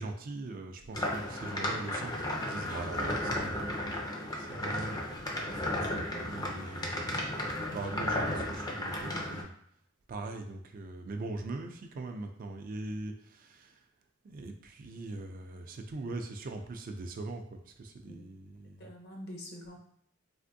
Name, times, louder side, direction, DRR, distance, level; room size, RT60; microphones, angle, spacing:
voice 1, 0.0-3.7 4.4-5.1 6.3-7.3 7.7-9.5 10.1-13.9 14.2-18.9, right 2 dB, 45° right, 5 dB, 0.3 m, -41 dB
sound 1, 0.9-9.4, left 1 dB, 20° left, 0.4 m, -34 dB
voice 2, 5.5-6.3 18.1-18.2 18.8-19.8, left 1 dB, 55° left, 1 dB, 0.7 m, -46 dB
3.4 x 2.5 x 2.6 m, 0.67 s
head